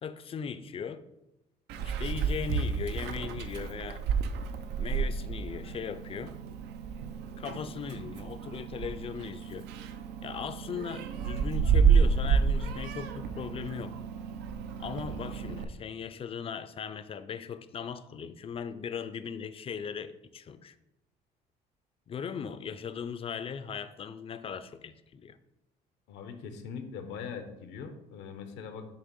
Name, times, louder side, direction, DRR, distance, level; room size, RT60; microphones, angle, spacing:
voice 1, 0.0-1.0 1.8-4.0 4.8-6.4 7.4-9.7 10.2-14.0 14.8-20.7 22.1-25.4, left 7 dB, 35° left, 0.4 m, -38 dB
Meow, 1.7-15.6, right 6 dB, 85° right, 0.5 m, -30 dB
voice 2, 26.1-28.9, left 6 dB, 85° left, 0.8 m, -41 dB
6.8 x 2.9 x 5.3 m
cardioid pair, 110°, 17 cm